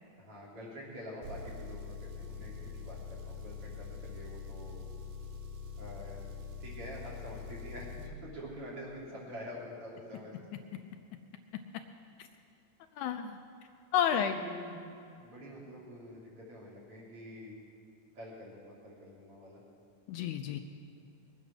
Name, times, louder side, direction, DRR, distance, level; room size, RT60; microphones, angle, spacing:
voice 1, 0.2-4.8 5.8-6.2 6.6-10.3 10.7-10.8 14.1-14.8 15.2-17.6 18.1-19.6, equal, 45° right, -5 dB, 4.3 m, -46 dB
Engine, 1.2-8.1, left 5 dB, 85° right, 2.7 m, -44 dB
voice 2, 13.0-13.4 13.9-14.3 20.1-20.6, left 9 dB, 80° left, 6 dB, 1.9 m, -30 dB
21.5 x 9.2 x 6.2 m, 2.5 s
omnidirectional pair, 3.8 m